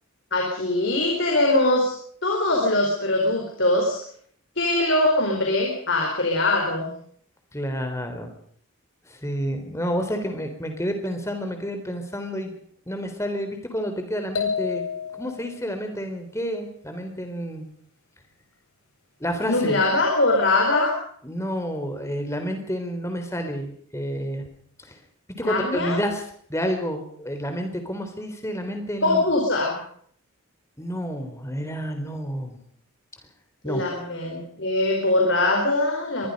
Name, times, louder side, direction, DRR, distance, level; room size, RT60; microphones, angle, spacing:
voice 1, 0.3-1.9 2.2-4.0 4.6-6.9 19.5-20.9 25.4-26.0 29.0-29.8 33.6-36.3, left 2 dB, 55° left, 0 dB, 4.9 m, -22 dB
voice 2, 7.5-8.3 9.1-12.5 12.9-14.8 15.2-17.7 19.2-19.8 21.2-24.5 24.9-25.0 25.4-26.2 26.5-29.2 30.8-32.6 33.6-33.9, equal, 15° left, 6 dB, 3.6 m, -29 dB
sound 1, 14.3-15.5, left 6 dB, 80° left, 8.0 m, -29 dB
24.5 x 21.0 x 5.4 m, 0.63 s
head